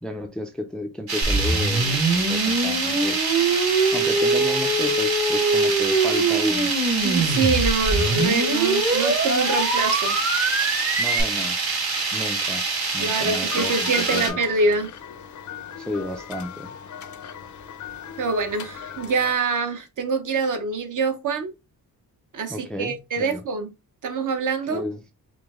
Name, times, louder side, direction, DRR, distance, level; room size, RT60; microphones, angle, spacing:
voice 1, 0.0-3.3 3.9-6.7 11.0-11.6 12.1-12.7 12.9-14.4 15.8-16.7 22.5-23.4 24.7-25.0, left 1 dB, ahead, 0.3 m, -32 dB
sound 1, 1.1-14.3, right 4 dB, 85° right, 1.5 m, -26 dB
sound 2, 1.2-11.2, right 2 dB, 40° right, 1.1 m, -23 dB
voice 2, 7.0-10.2 13.0-14.9 18.2-21.5 22.3-23.7 24.0-24.8, right 4 dB, 55° right, 0.8 m, -25 dB
sound 3, 13.4-19.4, left 9 dB, 55° left, 0.5 m, -37 dB
4.9 x 2.0 x 3.5 m
wide cardioid pair, 180°, 37 cm